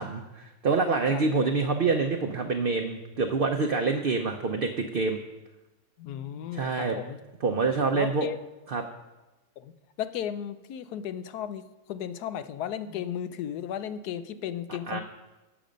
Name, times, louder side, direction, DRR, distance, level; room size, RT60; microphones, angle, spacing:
voice 1, 0.0-5.2 6.5-7.0 7.4-8.3 8.7-8.8 14.9-15.0, right 4 dB, 50° right, 3 dB, 0.7 m, -26 dB
voice 2, 1.1-1.4 6.0-7.2 7.9-8.4 9.6-9.7 10.0-15.0, left 10 dB, 85° left, 12 dB, 1.2 m, -35 dB
16.0 x 7.0 x 5.2 m, 1.1 s
omnidirectional pair, 1.6 m